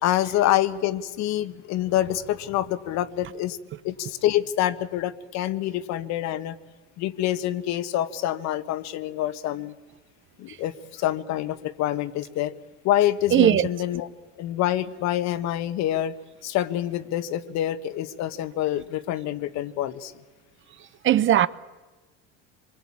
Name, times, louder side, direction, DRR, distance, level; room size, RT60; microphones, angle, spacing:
voice 1, 0.0-3.6 3.8-6.6 7.0-9.7 10.4-12.5 12.8-14.1 14.4-16.1 16.4-20.1, left 13 dB, 65° left, 1.5 m, -26 dB
voice 2, 13.3-13.7 21.0-21.5, right 11 dB, 40° right, 0.9 m, -18 dB
27.0 x 22.0 x 8.7 m
cardioid pair, 120°, 30 cm